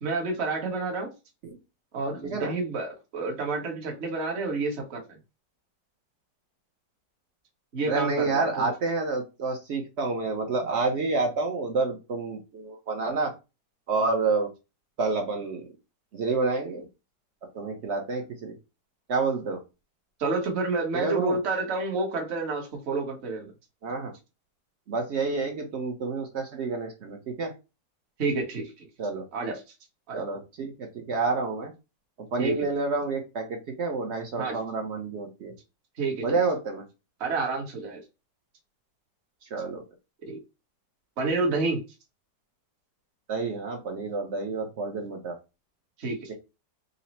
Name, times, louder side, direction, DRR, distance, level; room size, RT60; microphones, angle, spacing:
voice 1, 0.0-1.1 1.9-5.2 7.7-8.7 20.2-23.5 28.2-28.9 29.3-29.6 30.1-30.2 32.4-32.5 34.4-34.6 36.0-36.4 37.2-38.0 40.3-40.4 41.2-41.8 46.0-46.3, right 3 dB, 45° right, 1 dB, 1.1 m, -29 dB
voice 2, 7.9-13.3 13.9-14.5 15.0-15.7 16.1-16.9 17.5-18.5 19.1-19.6 20.9-21.4 23.8-24.1 24.9-27.5 29.0-29.3 30.1-31.7 32.3-35.5 36.2-36.8 39.5-39.8 43.3-45.4 46.3-46.4, right 3 dB, 65° right, 3 dB, 0.7 m, -29 dB
3.9 x 2.0 x 4.1 m, 0.27 s
omnidirectional pair, 2.0 m